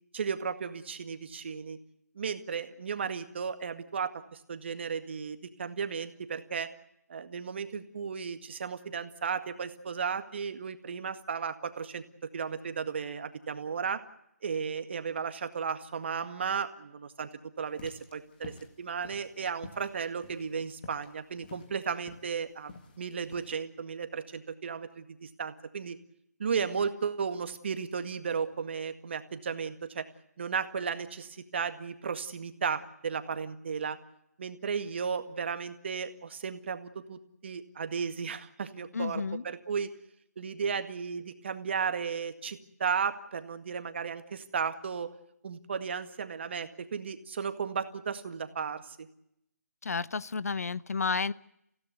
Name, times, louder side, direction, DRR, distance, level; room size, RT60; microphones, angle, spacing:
voice 1, 0.1-1.8 2.2-6.7 7.1-12.0 12.3-14.0 14.4-17.3 17.6-26.0 26.4-30.1 30.4-34.0 34.4-39.9 40.4-45.1 45.4-49.1, right 6 dB, 40° right, 9 dB, 1.9 m, -34 dB
sound 1, 17.7-23.5, left 5 dB, 30° left, 2.1 m, -50 dB
voice 2, 38.9-39.4 49.8-51.3, left 5 dB, 60° left, 18 dB, 0.8 m, -31 dB
28.5 x 16.5 x 8.0 m, 0.78 s
figure-of-eight pair, 160°, 9 cm